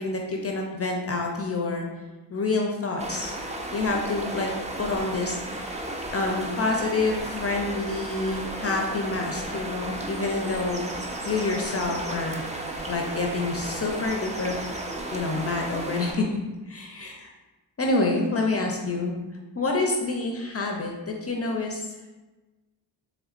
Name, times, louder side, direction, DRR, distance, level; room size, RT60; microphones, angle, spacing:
voice 1, 0.0-1.9 2.3-4.5 4.8-5.8 6.1-10.9 11.3-12.4 12.9-14.6 15.1-16.3 16.7-17.3 17.8-19.1 19.5-21.8, left 3 dB, 35° left, 1 dB, 0.5 m, -27 dB
sound 1, 3.0-16.1, right 1 dB, 15° right, 0.5 m, -34 dB
4.0 x 3.2 x 2.5 m, 1.2 s
cardioid pair, 75°, 45 cm